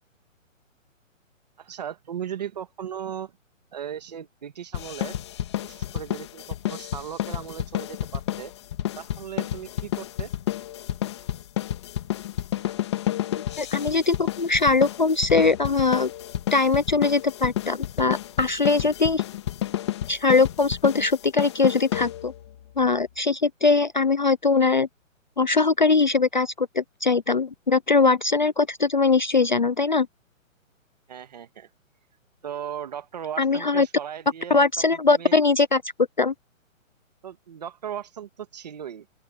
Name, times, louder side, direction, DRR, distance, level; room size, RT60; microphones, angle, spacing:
voice 1, 1.6-3.4 3.7-5.2 5.6-8.5 9.0-10.3 31.1-31.7 32.4-35.3 37.2-39.2, right 9 dB, 30° right, 2.0 m, -37 dB
sound 1, 4.7-22.5, left 12 dB, 20° left, 2.0 m, -30 dB
voice 2, 13.3-16.1 16.5-19.2 20.1-22.3 22.8-24.9 25.4-30.1 33.4-33.9 34.5-35.8 36.2-36.3, left 4 dB, 35° left, 0.6 m, -21 dB
open air
hypercardioid pair, 180°, 40 cm